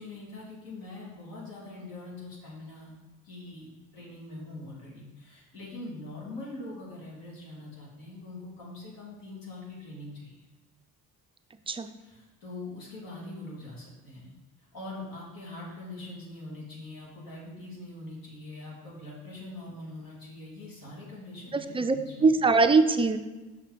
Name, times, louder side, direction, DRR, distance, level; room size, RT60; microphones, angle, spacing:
voice 1, 0.0-10.5 12.0-14.3 14.6-22.3, left 2 dB, 70° left, -4 dB, 2.3 m, -43 dB
voice 2, 21.5-22.0 22.2-23.2, right 4 dB, 15° right, 8 dB, 0.3 m, -22 dB
6.1 x 4.6 x 4.9 m, 1.2 s
cardioid pair, 115°, 36 cm